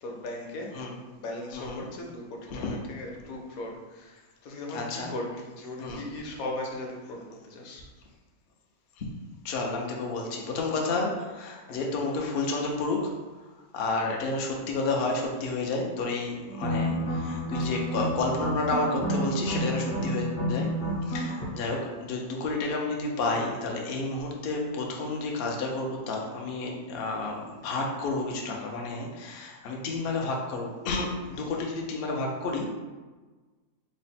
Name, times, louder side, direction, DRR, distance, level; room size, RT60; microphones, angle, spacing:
voice 1, 0.0-0.7 1.0-7.8 11.6-11.8 31.3-31.5, left 1 dB, 65° left, 0 dB, 1.0 m, -38 dB
voice 2, 1.5-1.9 2.5-2.8 4.7-5.1 5.8-6.0 9.0-9.1 9.4-13.1 13.7-20.7 21.1-32.7, left 3 dB, 90° left, 0 dB, 0.5 m, -31 dB
sound 1, 16.5-21.5, equal, 50° left, 0.7 m, -30 dB
3.7 x 2.1 x 4.1 m, 1.3 s
omnidirectional pair, 1.7 m